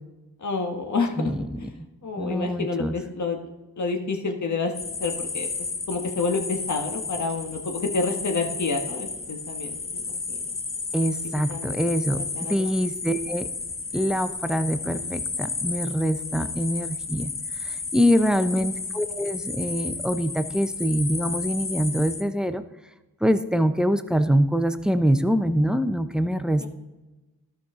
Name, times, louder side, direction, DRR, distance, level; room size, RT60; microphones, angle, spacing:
voice 1, 0.4-1.3 1.6-1.7 2.0-3.4 3.8-4.7 5.0-5.5 5.9-10.0 10.3-10.4 11.5-11.8 12.1-12.7 16.4-16.5 26.6-26.7, left 4 dB, 50° left, 4 dB, 1.5 m, -28 dB
voice 2, 1.2-1.9 2.2-2.9 10.9-13.5 13.9-17.3 17.6-22.6 23.2-26.7, equal, ahead, 10 dB, 0.7 m, -24 dB
sound 1, 4.7-22.2, left 4 dB, 35° left, 1.2 m, -33 dB
13.0 x 5.7 x 3.7 m, 1.1 s
cardioid pair, 55°, 36 cm